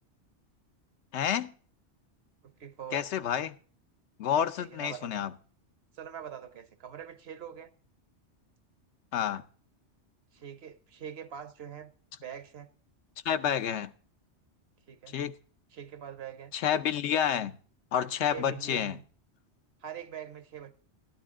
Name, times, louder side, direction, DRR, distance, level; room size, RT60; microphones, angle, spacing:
voice 1, 1.1-1.5 2.9-3.6 4.2-5.3 9.1-9.4 13.2-13.9 15.1-15.3 16.5-17.6 17.9-19.0, left 9 dB, 80° left, 1.0 m, -29 dB
voice 2, 2.4-3.0 4.6-5.2 5.9-7.7 10.3-11.9 12.2-12.7 14.9-15.1 15.7-16.5 18.3-19.0 19.8-20.7, right 9 dB, 65° right, 1.1 m, -43 dB
12.5 x 10.0 x 3.6 m
omnidirectional pair, 1.2 m